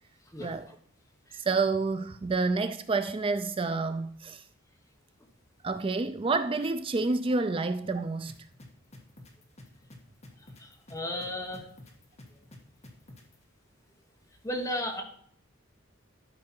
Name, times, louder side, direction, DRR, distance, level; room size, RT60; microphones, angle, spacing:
voice 1, 1.3-4.4 5.6-8.3, right 3 dB, 25° right, 0.3 m, -29 dB
sound 1, 8.3-13.4, left 1 dB, 30° left, 1.6 m, -49 dB
voice 2, 10.6-11.6 14.4-15.0, left 1 dB, 15° left, 1.1 m, -34 dB
12.0 x 5.4 x 4.4 m
head